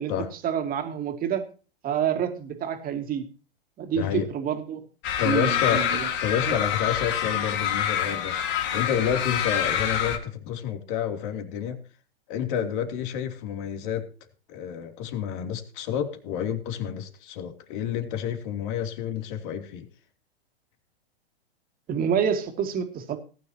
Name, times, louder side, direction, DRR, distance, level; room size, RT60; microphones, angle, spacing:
voice 1, 0.4-1.4 1.8-3.2 3.8-4.8 5.2-6.1 6.5-6.6 21.9-23.2, right 8 dB, 30° right, 2.6 m, -27 dB
voice 2, 3.9-4.3 5.2-11.8 12.3-14.1 14.5-19.9, left 8 dB, 55° left, 3.0 m, -29 dB
sound 1, 5.0-10.2, left 9 dB, 35° left, 2.3 m, -26 dB
19.0 x 10.0 x 2.9 m
hypercardioid pair, 110°, 31 cm